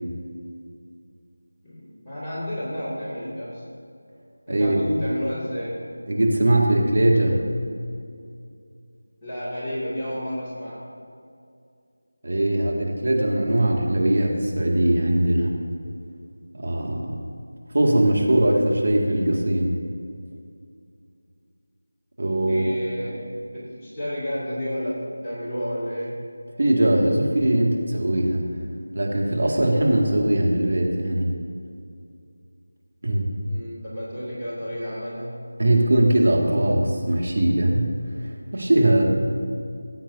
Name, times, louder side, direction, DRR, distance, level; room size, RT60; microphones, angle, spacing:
voice 1, 1.6-3.6 4.5-5.8 9.2-10.8 22.4-26.2 33.5-35.4, equal, 15° left, -12 dB, 2.3 m, -31 dB
voice 2, 4.5-4.8 6.1-7.4 12.2-15.5 16.5-17.1 17.7-19.8 22.2-22.6 26.6-28.4 28.9-31.3 33.0-33.3 35.6-37.9 38.2-39.1, right 1 dB, 55° right, -1 dB, 2.1 m, -20 dB
18.5 x 8.7 x 2.7 m, 2.3 s
figure-of-eight pair, 170°, 0 cm